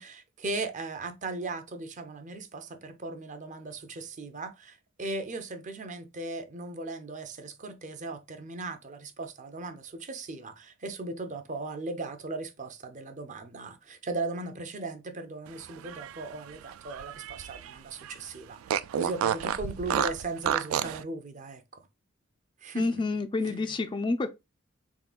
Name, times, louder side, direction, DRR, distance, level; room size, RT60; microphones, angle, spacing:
voice 1, 0.0-21.8 22.6-23.0 23.5-23.8, right 2 dB, 35° right, 0.5 m, -38 dB
Fart, 15.7-17.7 18.0-18.1 18.7-21.0, right 9 dB, 90° right, 0.3 m, -30 dB
voice 2, 22.7-24.3, left 3 dB, 25° left, 0.3 m, -28 dB
3.6 x 3.6 x 2.3 m
head